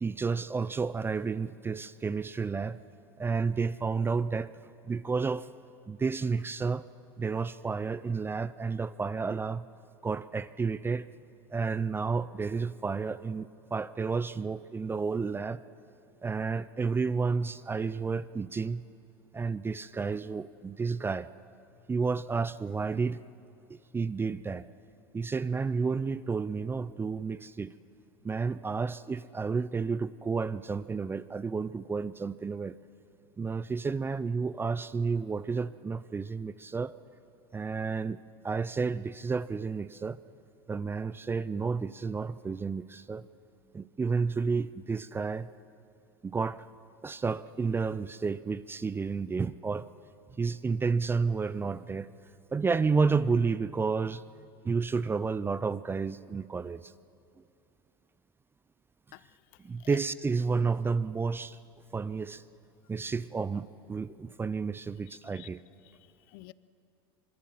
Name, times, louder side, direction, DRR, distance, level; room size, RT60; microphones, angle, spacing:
voice 1, 0.0-2.8 3.2-4.5 4.8-5.5 5.9-6.8 7.2-9.7 10.0-11.1 11.5-15.6 16.2-18.8 19.3-21.3 21.9-23.2 23.7-24.7 25.1-27.7 28.2-32.8 33.4-36.9 37.5-38.2 38.4-40.2 40.7-43.2 43.7-45.5 46.2-46.6 47.0-49.9 50.4-52.1 52.5-54.2 54.6-56.9 59.6-61.6 61.9-62.4 62.9-65.6, right 4 dB, 15° right, 0.5 m, -31 dB
voice 2, 65.1-65.5 65.8-66.5, left 21 dB, 60° left, 0.7 m, -51 dB
24.5 x 22.0 x 7.6 m
hypercardioid pair, 95°, 14 cm